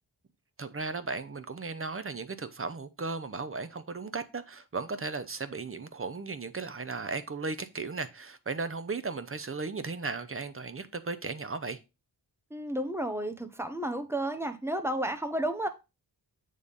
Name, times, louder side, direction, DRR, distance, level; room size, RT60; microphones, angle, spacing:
voice 1, 0.6-11.8, right 4 dB, 30° right, 0.8 m, -36 dB
voice 2, 12.5-15.7, right 1 dB, 5° right, 1.0 m, -32 dB
8.8 x 3.4 x 5.3 m
wide cardioid pair, 100°, 45 cm